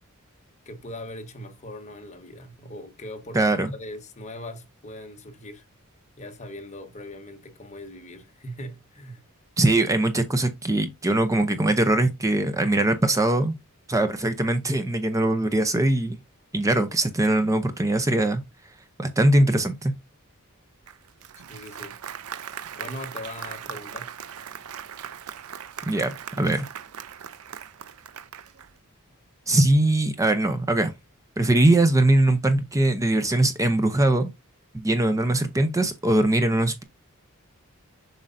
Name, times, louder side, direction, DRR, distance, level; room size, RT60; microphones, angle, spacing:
voice 1, 0.6-3.4 3.7-5.6 6.2-9.2 21.3-22.0 22.7-24.1, left 1 dB, 35° left, 1.2 m, -40 dB
voice 2, 3.3-3.7 9.6-13.6 13.9-16.2 16.5-18.4 19.0-19.9 25.9-26.6 29.5-30.9 31.4-34.3 34.7-36.8, right 1 dB, 15° right, 0.6 m, -21 dB
Applause, 20.9-28.8, right 8 dB, 70° right, 0.5 m, -39 dB
7.3 x 5.4 x 2.6 m
head